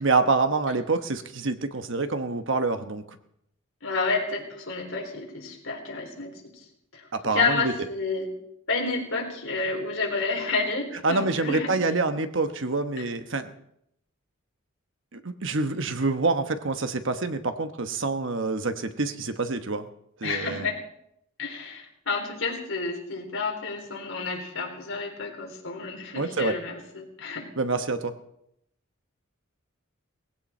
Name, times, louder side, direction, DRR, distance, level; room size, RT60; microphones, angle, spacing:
voice 1, 0.0-3.0 7.1-7.7 11.0-13.5 15.1-19.9 20.2-20.7 26.1-26.5 27.6-28.1, right 3 dB, 60° right, 9 dB, 1.1 m, -26 dB
voice 2, 3.8-6.3 6.9-8.3 8.7-11.7 20.2-20.8 21.4-27.5, left 4 dB, 70° left, 0 dB, 4.1 m, -30 dB
19.0 x 16.0 x 4.4 m, 0.77 s
head